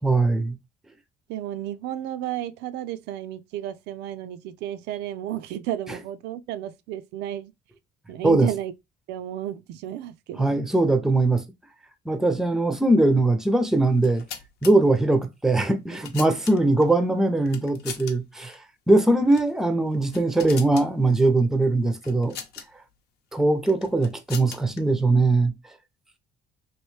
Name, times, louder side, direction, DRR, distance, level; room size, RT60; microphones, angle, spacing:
voice 1, 0.0-0.6 8.2-8.5 10.4-11.4 12.1-14.2 14.6-18.6 18.9-22.4 23.3-25.5, right 2 dB, 5° right, 0.5 m, -21 dB
voice 2, 1.3-7.5 8.1-8.7 9.1-10.7, right 12 dB, 80° right, 0.4 m, -33 dB
Seatbelt In A, 13.9-14.7 15.6-16.8 17.5-18.1 18.4-18.6 19.3-19.5 19.9-20.9 22.0-22.7 23.7-24.8, left 8 dB, 75° left, 0.8 m, -39 dB
3.0 x 2.6 x 3.1 m
cardioid pair, 110°, 17 cm